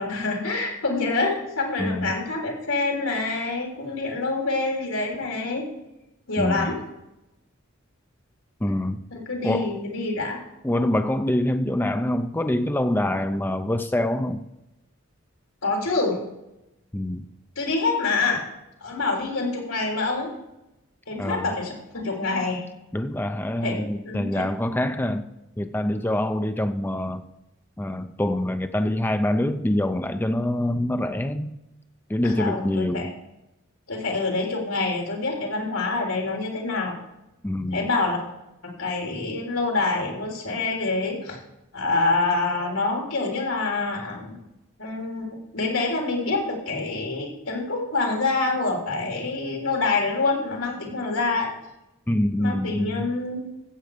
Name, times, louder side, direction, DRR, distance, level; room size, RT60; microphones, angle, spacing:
voice 1, 0.0-5.7 6.3-6.8 9.1-10.4 15.6-16.2 17.6-18.5 18.8-20.3 21.1-22.7 23.6-24.4 32.2-33.1 33.9-36.9 37.7-38.2 38.6-41.4 41.7-44.4 44.8-51.5 52.4-53.4, left 3 dB, 85° left, -1 dB, 3.6 m, -26 dB
voice 2, 1.8-2.1 6.4-6.7 8.6-9.0 9.4-9.8 10.6-14.4 16.9-17.2 21.2-21.5 22.9-25.3 25.6-27.2 27.8-31.6 32.1-33.1 37.4-37.9 52.1-53.1, left 1 dB, 10° left, 8 dB, 0.5 m, -25 dB
14.5 x 8.2 x 5.0 m, 0.91 s
head